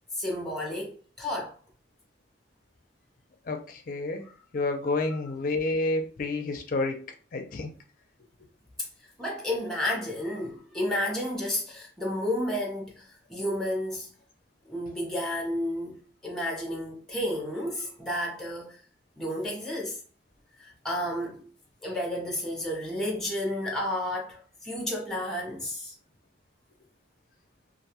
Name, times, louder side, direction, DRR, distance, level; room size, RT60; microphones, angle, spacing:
voice 1, 0.1-1.6 4.2-4.4 8.8-8.9 9.2-14.1 14.7-16.0 16.2-18.8 19.2-20.0 20.6-21.5 21.8-25.9, left 1 dB, ahead, 0.6 m, -31 dB
voice 2, 3.5-4.2 4.5-7.0 7.3-7.7, left 2 dB, 50° left, 0.4 m, -29 dB
2.4 x 2.2 x 2.8 m
head